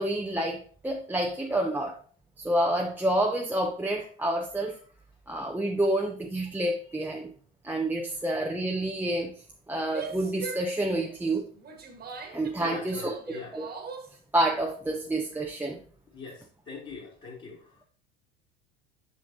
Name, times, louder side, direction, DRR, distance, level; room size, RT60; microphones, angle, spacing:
voice 1, 0.0-2.0 2.4-4.8 5.3-7.3 7.6-9.3 9.7-11.5 12.3-13.1 13.5-13.7 14.3-15.8, right 1 dB, 5° right, 0 dB, 0.7 m, -28 dB
Female speech woman speaking / Yell, 9.8-14.2, right 5 dB, 30° right, 1.6 m, -40 dB
voice 2, 12.6-13.6 16.1-17.8, left 4 dB, 35° left, -7 dB, 2.6 m, -43 dB
6.9 x 6.3 x 2.8 m, 0.42 s
hypercardioid pair, 75°, 31 cm